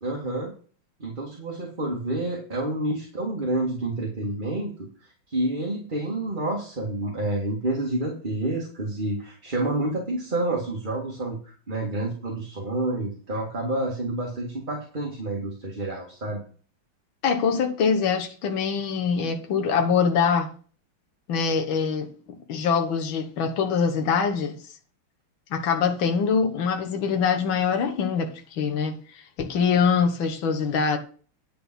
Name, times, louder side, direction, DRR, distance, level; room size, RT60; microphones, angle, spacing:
voice 1, 0.0-0.5 1.0-4.9 5.3-16.4, right 2 dB, 25° right, 1.9 m, -29 dB
voice 2, 17.2-20.5 21.3-22.1 22.5-24.6 25.5-29.0 29.4-31.0, left 6 dB, 70° left, 2.0 m, -23 dB
10.0 x 5.5 x 6.1 m
omnidirectional pair, 2.3 m